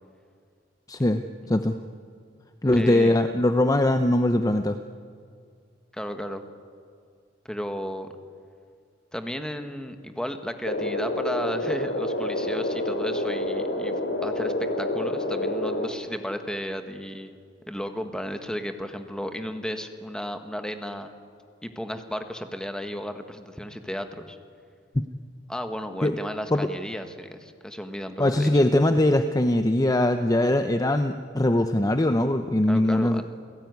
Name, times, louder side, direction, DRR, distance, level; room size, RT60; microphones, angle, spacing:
voice 1, 0.9-1.2 1.5-1.7 2.6-4.8 24.9-25.0 26.0-26.2 26.5-26.7 28.2-33.2, left 1 dB, 20° left, 8 dB, 0.7 m, -21 dB
voice 2, 2.6-3.2 5.9-6.4 7.4-8.1 9.1-13.9 14.2-17.3 17.7-21.1 21.6-24.4 25.5-28.5 32.7-33.2, equal, 5° left, 7 dB, 1.5 m, -34 dB
sound 1, 10.6-15.9, left 1 dB, 65° left, 3.1 m, -28 dB
29.0 x 17.5 x 9.5 m, 2.2 s
head